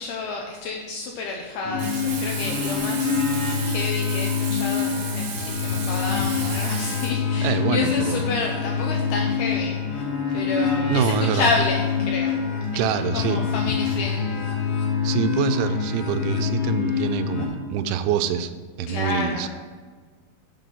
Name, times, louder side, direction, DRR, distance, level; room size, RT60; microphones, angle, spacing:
voice 1, 0.0-3.2 3.6-10.1 10.3-12.4 12.7-14.9 18.9-19.5, left 4 dB, 85° left, 0 dB, 2.3 m, -30 dB
sound 1, 1.6-17.5, left 6 dB, 65° left, 3.1 m, -25 dB
Frying (food), 1.8-7.1, right 5 dB, 65° right, 3.3 m, -34 dB
voice 2, 7.4-8.2 10.9-11.5 12.8-13.4 15.0-18.5 18.8-19.5, right 8 dB, 85° right, 10 dB, 2.9 m, -25 dB
7.6 x 5.3 x 5.9 m, 1.5 s
omnidirectional pair, 5.3 m